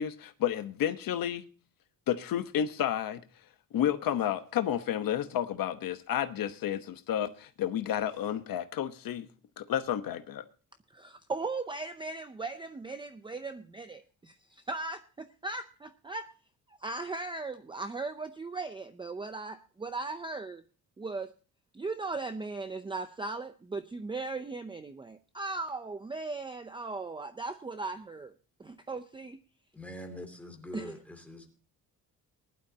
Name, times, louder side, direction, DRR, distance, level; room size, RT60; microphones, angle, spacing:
voice 1, 0.0-1.4 2.1-3.2 3.7-9.3 9.6-10.4, left 10 dB, 70° left, 1.1 m, -31 dB
voice 2, 10.9-16.3 16.7-20.6 21.0-21.3 21.7-28.3 28.6-29.4 30.7-31.0, right 3 dB, 15° right, 0.6 m, -38 dB
voice 3, 29.7-31.5, left 1 dB, 5° left, 2.8 m, -44 dB
20.0 x 11.5 x 2.8 m
cardioid pair, 165°, 36 cm